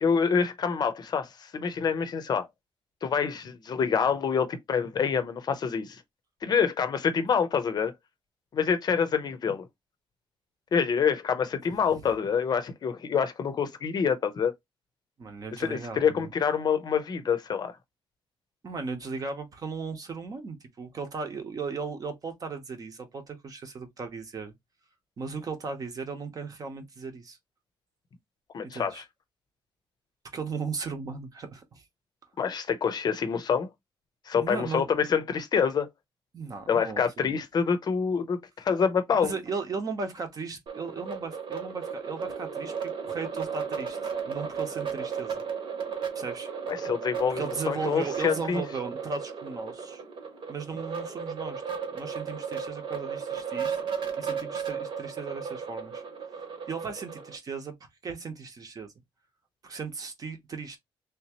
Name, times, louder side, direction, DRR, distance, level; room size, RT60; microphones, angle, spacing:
voice 1, 0.0-2.5 3.0-6.0 6.4-7.9 8.5-9.7 10.7-14.5 15.6-17.7 28.5-29.0 32.4-33.7 34.3-35.9 36.7-39.3 46.7-48.6, left 6 dB, 45° left, 0.6 m, -26 dB
voice 2, 15.2-16.3 18.6-24.5 25.2-27.4 28.6-29.0 30.3-31.8 34.4-34.9 36.3-37.4 39.2-44.0 44.2-45.4 46.1-46.5 47.3-50.0 50.5-51.6 51.9-56.0 56.7-57.7 58.0-58.9 59.6-60.8, right 4 dB, 40° right, 0.9 m, -36 dB
sound 1, 40.7-57.4, right 6 dB, 60° right, 1.1 m, -35 dB
3.4 x 2.8 x 2.9 m
wide cardioid pair, 165°, 10 cm